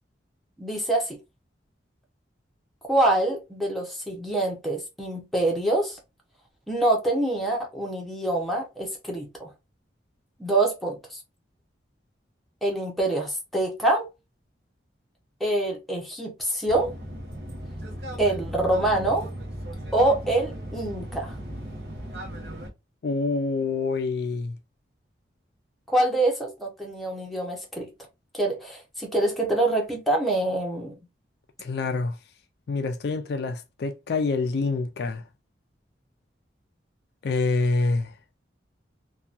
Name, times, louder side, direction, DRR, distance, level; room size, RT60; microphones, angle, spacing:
voice 1, 0.6-1.2 2.9-6.0 6.7-9.5 10.4-11.2 12.6-14.1 15.4-16.9 18.2-19.3 19.9-21.3 25.9-27.9 28.3-31.0, right 2 dB, ahead, 0.7 m, -25 dB
sound 1, 16.7-22.7, right 1 dB, 60° right, 0.8 m, -36 dB
voice 2, 23.0-24.6 31.6-32.2 32.7-35.2 37.2-38.1, left 3 dB, 60° left, 0.3 m, -26 dB
2.8 x 2.3 x 2.4 m
head